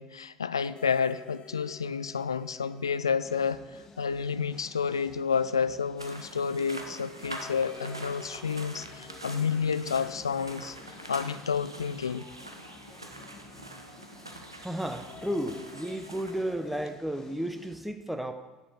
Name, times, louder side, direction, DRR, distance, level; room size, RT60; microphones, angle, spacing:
voice 1, 0.0-3.6 4.0-10.8 11.1-12.3, left 6 dB, 80° left, 0.3 m, -30 dB
sound 1, 0.6-4.4 4.6-4.7 7.2-12.6 15.0-17.0, left 6 dB, 40° left, 0.7 m, -51 dB
sound 2, 3.2-17.8, left 3 dB, 25° left, 1.9 m, -53 dB
sound 3, 6.0-16.9, right 1 dB, 90° right, 0.7 m, -45 dB
voice 2, 14.6-18.3, right 1 dB, 5° right, 1.0 m, -33 dB
10.0 x 8.0 x 4.8 m
figure-of-eight pair, 65°, 2 cm